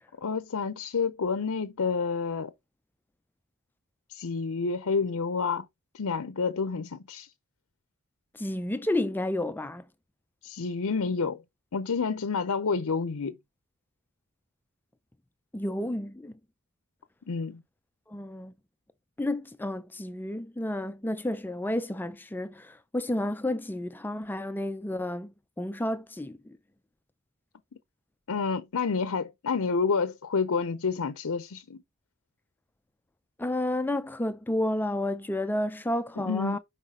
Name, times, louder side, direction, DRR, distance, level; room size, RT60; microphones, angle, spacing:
voice 1, 0.2-2.5 4.1-5.7 5.9-7.3 10.4-11.4 11.7-13.3 17.3-17.6 28.3-31.8 36.2-36.6, left 5 dB, 70° left, 0.6 m, -29 dB
voice 2, 8.3-9.8 15.5-16.3 18.1-18.5 19.2-26.6 33.4-36.6, left 1 dB, 10° left, 0.4 m, -31 dB
5.7 x 5.5 x 3.6 m
head